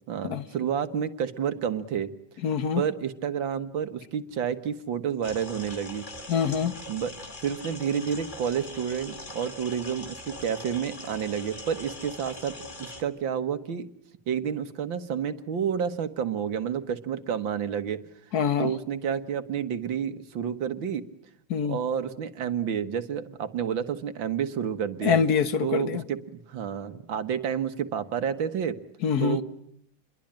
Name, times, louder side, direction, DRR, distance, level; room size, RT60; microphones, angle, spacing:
voice 1, 0.0-2.1 2.8-6.1 6.9-13.9 14.3-18.0 18.6-21.0 21.6-25.2 25.6-28.8 29.2-29.4, right 8 dB, 85° right, 2.2 m, -30 dB
voice 2, 2.4-2.8 6.3-6.7 18.3-18.7 21.5-21.8 25.0-26.0 29.0-29.4, left 7 dB, 55° left, 1.7 m, -24 dB
sound 1, 5.2-13.0, left 1 dB, 25° left, 2.6 m, -41 dB
28.0 x 22.5 x 8.9 m
omnidirectional pair, 2.0 m